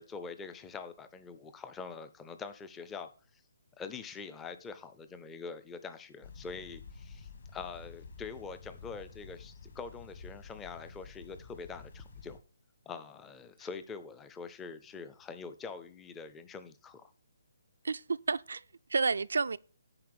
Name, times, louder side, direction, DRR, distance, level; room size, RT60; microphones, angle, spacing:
voice 1, 0.0-3.4 3.8-12.4 12.9-17.1, left 5 dB, 5° left, 0.5 m, -44 dB
sound 1, 6.2-12.4, left 4 dB, 55° left, 2.1 m, -50 dB
voice 2, 17.8-19.6, right 4 dB, 85° right, 0.4 m, -31 dB
9.6 x 4.5 x 6.7 m
hypercardioid pair, 175°, 0 cm